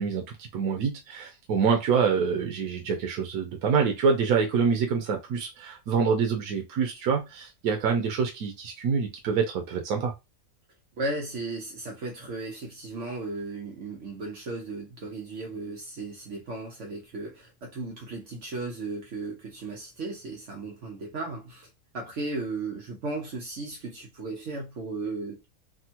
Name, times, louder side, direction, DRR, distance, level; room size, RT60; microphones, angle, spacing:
voice 1, 0.0-10.1, right 6 dB, 85° right, 1.1 m, -26 dB
voice 2, 11.0-21.7 21.9-25.5, right 3 dB, 60° right, 1.1 m, -35 dB
3.4 x 2.1 x 2.8 m
omnidirectional pair, 1.5 m